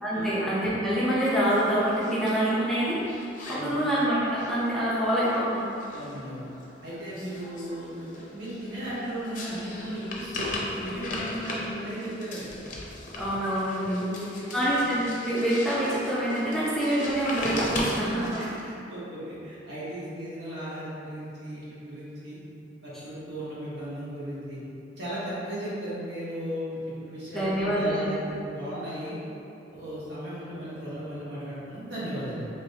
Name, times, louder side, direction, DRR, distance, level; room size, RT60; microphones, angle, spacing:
voice 1, 0.0-3.0 3.5-5.7 13.2-14.0 14.5-18.4 27.3-28.3, right 1 dB, ahead, -10 dB, 0.6 m, -26 dB
sound 1, 1.4-18.6, left 1 dB, 45° left, 0.6 m, -38 dB
voice 2, 5.9-6.5 6.8-12.5 13.7-14.7 18.3-22.4 22.8-24.6 25.0-29.2 29.7-32.5, equal, 65° right, -10 dB, 1.4 m, -36 dB
4.8 x 3.1 x 2.8 m, 2.7 s
head